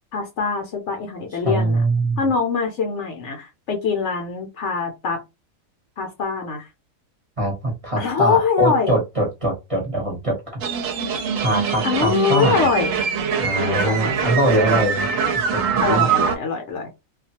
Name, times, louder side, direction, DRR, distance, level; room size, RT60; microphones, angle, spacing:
voice 1, 0.1-1.8 2.2-5.2 6.0-6.7 8.0-9.0 11.8-12.9 13.6-14.0 14.2-14.3 14.6-14.9 15.8-16.9, left 5 dB, 65° left, 0.8 m, -23 dB
voice 2, 1.3-2.2 7.4-10.3 11.4-12.7 13.4-15.1 15.7-16.1, right 1 dB, 30° right, 0.9 m, -22 dB
sound 1, 10.6-16.4, right 7 dB, 70° right, 0.9 m, -23 dB
2.4 x 2.3 x 2.8 m
omnidirectional pair, 1.5 m